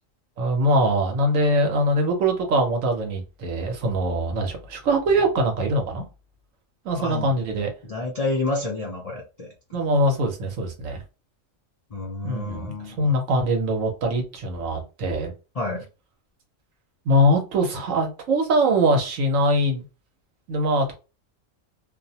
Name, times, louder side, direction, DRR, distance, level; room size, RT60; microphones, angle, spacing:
voice 1, 0.4-6.1 6.8-7.7 9.7-11.0 12.2-15.3 17.1-19.8 20.5-20.9, right 1 dB, 80° right, 1.1 m, -22 dB
voice 2, 7.0-7.3 7.8-9.5 11.9-13.1 15.5-15.8, left 2 dB, 60° left, 0.4 m, -29 dB
2.6 x 2.0 x 2.7 m
omnidirectional pair, 1.3 m